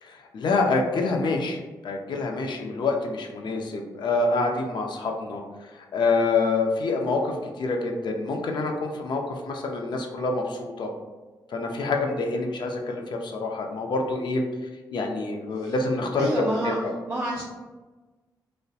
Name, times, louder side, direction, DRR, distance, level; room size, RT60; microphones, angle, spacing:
voice 1, 0.0-10.9 11.5-14.4 14.9-16.6 16.8-16.9, left 3 dB, 60° left, 2 dB, 0.4 m, -27 dB
voice 2, 16.2-16.8 17.1-17.4, right 1 dB, 30° right, -5 dB, 0.5 m, -28 dB
2.6 x 2.1 x 2.3 m, 1.2 s
supercardioid pair, 50°, 8 cm